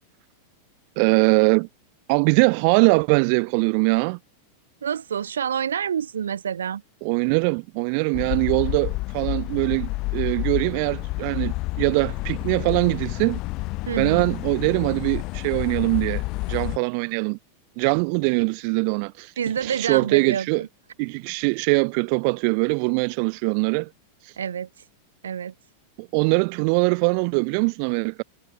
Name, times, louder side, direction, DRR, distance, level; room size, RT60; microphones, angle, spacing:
voice 1, 1.0-1.7 2.1-4.2 7.0-13.4 14.0-16.2 16.5-17.4 17.8-19.3 19.6-20.6 21.0-23.9 24.2-24.3 26.0-28.2, right 38 dB, 45° right, 3.9 m, -22 dB
voice 2, 4.8-6.8 13.9-14.3 19.4-20.7 24.4-24.7 25.2-25.5, right 8 dB, 65° right, 5.3 m, -27 dB
sound 1, 8.1-16.8, left 22 dB, 40° left, 3.6 m, -29 dB
figure-of-eight pair, 90°, 0 cm